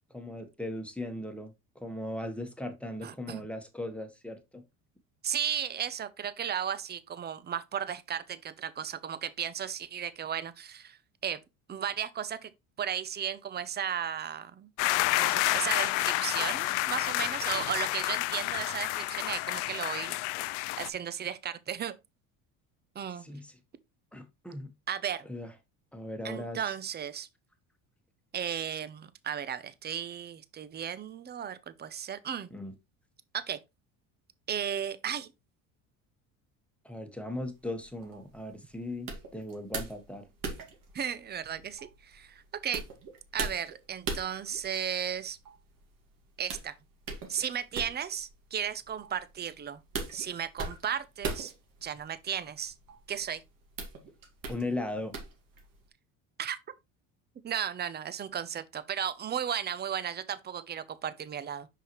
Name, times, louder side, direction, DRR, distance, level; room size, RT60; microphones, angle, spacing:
voice 1, 0.1-4.6 23.2-23.5 24.1-24.7 25.2-25.5 25.9-26.7 32.5-32.7 36.8-40.2 54.5-55.2, left 1 dB, 5° left, 1.4 m, -38 dB
voice 2, 3.0-3.4 5.2-11.0 11.2-11.4 11.7-12.5 12.8-14.7 15.1-20.2 20.8-21.9 23.0-23.2 24.9-25.3 26.2-27.3 28.3-32.5 33.3-33.6 34.5-35.3 40.9-42.8 43.3-45.4 46.4-46.7 47.3-49.8 50.1-51.5 51.8-52.7 53.1-53.4 56.4-56.6 57.4-61.7, right 8 dB, 25° right, 0.7 m, -35 dB
sound 1, 14.8-20.9, left 18 dB, 85° left, 0.6 m, -29 dB
sound 2, 37.4-55.9, right 4 dB, 55° right, 2.2 m, -42 dB
5.8 x 5.5 x 3.1 m
supercardioid pair, 95°, 40 cm